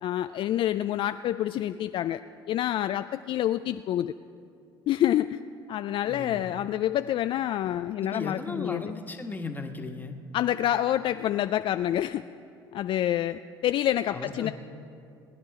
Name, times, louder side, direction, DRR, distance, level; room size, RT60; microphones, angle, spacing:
voice 1, 0.0-2.2 2.5-4.1 4.9-5.4 5.7-8.8 10.3-12.2 12.7-14.5, left 12 dB, 50° left, 11 dB, 0.3 m, -27 dB
voice 2, 6.0-6.5 8.0-10.2 14.1-14.5, left 3 dB, 15° left, 4 dB, 1.4 m, -36 dB
20.0 x 9.7 x 4.8 m, 2.5 s
hypercardioid pair, 75°, 11 cm